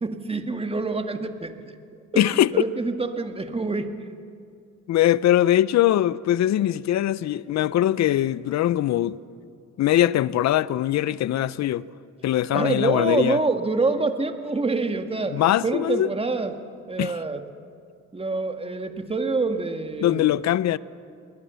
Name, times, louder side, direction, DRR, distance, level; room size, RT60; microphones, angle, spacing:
voice 1, 0.0-4.0 12.5-16.6 16.9-17.4 18.1-20.3, right 3 dB, 20° right, 1.9 m, -26 dB
voice 2, 2.2-2.5 4.9-9.2 9.8-11.9 12.2-13.4 15.3-16.1 17.0-17.1 20.0-20.8, left 13 dB, 65° left, 0.7 m, -21 dB
27.5 x 20.0 x 7.0 m
cardioid pair, 90°, 30 cm